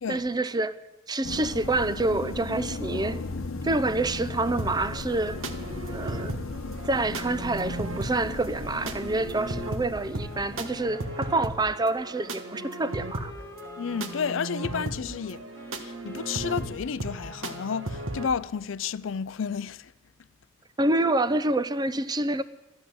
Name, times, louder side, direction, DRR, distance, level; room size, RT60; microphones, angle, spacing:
voice 1, 0.1-0.8 1.1-3.2 3.6-5.4 5.9-6.4 6.8-13.3 20.8-22.4, right 2 dB, 20° right, 0.6 m, -27 dB
sound 1, 1.2-10.9, left 3 dB, 90° left, 1.0 m, -36 dB
sound 2, 4.6-18.3, right 2 dB, 75° right, 1.4 m, -36 dB
Wind instrument woodwind instrument, 9.9-18.4, left 2 dB, 15° left, 1.0 m, -48 dB
voice 2, 13.8-15.4 15.8-19.9, left 6 dB, 70° left, 0.5 m, -31 dB
12.5 x 12.5 x 7.6 m
head